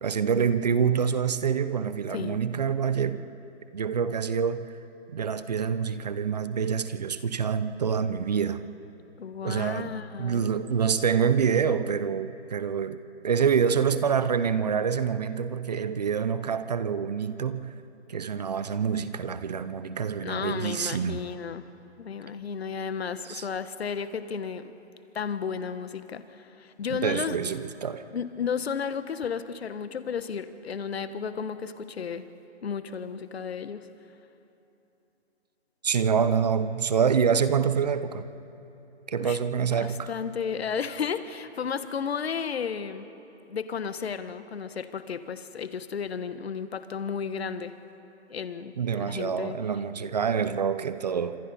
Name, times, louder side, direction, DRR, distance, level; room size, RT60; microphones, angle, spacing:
voice 1, 0.0-3.2 3.7-4.7 5.1-8.6 9.4-17.7 18.1-21.2 23.2-23.5 26.9-28.0 35.8-38.3 39.1-40.1 48.8-51.4, right 7 dB, 35° right, 13 dB, 0.7 m, -26 dB
voice 2, 9.2-10.5 20.2-21.7 22.0-24.7 25.1-27.4 28.1-32.3 32.6-33.9 39.2-39.4 39.7-43.1 43.5-47.8 48.3-49.6, left 6 dB, 60° left, 11 dB, 1.2 m, -33 dB
26.5 x 25.5 x 4.2 m, 3.0 s
hypercardioid pair, 160°, 35 cm